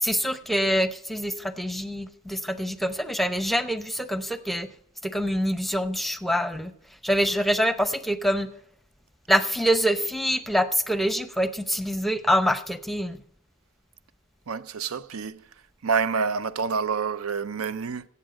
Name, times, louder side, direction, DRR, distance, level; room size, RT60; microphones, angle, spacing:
voice 1, 0.0-4.7 5.0-6.7 7.0-8.5 9.3-13.2, equal, ahead, 0.7 m, -25 dB
voice 2, 14.5-15.4 15.8-18.1, right 5 dB, 75° right, 0.6 m, -27 dB
16.5 x 7.3 x 5.1 m
head